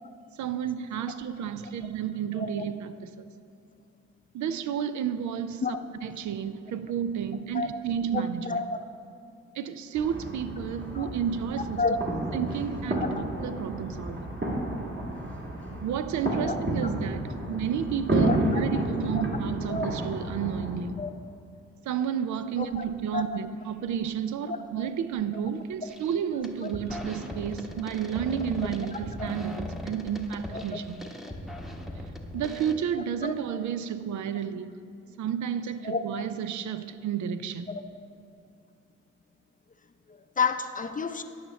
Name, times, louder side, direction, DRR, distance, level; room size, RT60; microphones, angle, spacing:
voice 1, 0.4-3.3 4.3-5.8 6.0-8.6 9.5-11.8 12.3-14.3 15.8-21.0 21.9-31.0 32.3-34.7 35.2-37.8, right 8 dB, 65° right, 11 dB, 0.5 m, -31 dB
voice 2, 2.3-2.7 5.6-5.8 7.5-7.7 8.1-8.8 10.9-11.1 11.8-12.0 13.0-13.2 16.4-16.5 18.2-18.8 19.1-19.2 19.7-19.9 21.0-21.1 22.6-22.9 23.1-23.4 24.5-24.9 26.6-26.7 30.5-30.8 33.2-33.3 35.8-36.2 37.7-37.8 40.1-41.2, left 4 dB, 25° left, 8 dB, 0.5 m, -31 dB
sound 1, 9.9-20.8, right 1 dB, 35° right, 1.9 m, -31 dB
sound 2, 25.9-26.1 26.4-32.7, left 1 dB, ahead, 0.9 m, -39 dB
11.5 x 5.7 x 3.1 m, 2.6 s
supercardioid pair, 45°, 31 cm